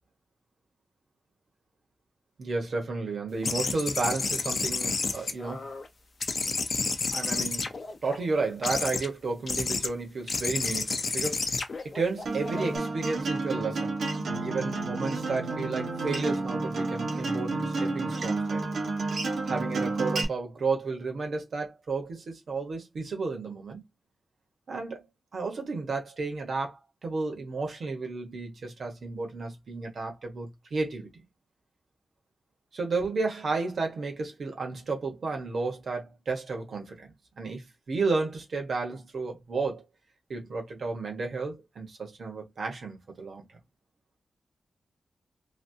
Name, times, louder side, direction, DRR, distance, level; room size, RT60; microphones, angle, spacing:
voice 1, 2.4-5.7 7.1-7.7 8.0-11.5 11.8-14.0 14.3-18.6 19.5-23.8 24.7-25.0 25.3-31.2 32.7-39.8 40.3-43.4, right 3 dB, 60° right, 1.2 m, -32 dB
sound 1, 3.4-5.9 6.2-8.1 8.6-9.1 9.5-9.9 10.3-12.8, left 4 dB, 45° left, 0.6 m, -30 dB
Acoustic guitar, 12.3-20.2, right 3 dB, 80° right, 1.0 m, -30 dB
3.2 x 2.6 x 2.7 m
wide cardioid pair, 140°, 0 cm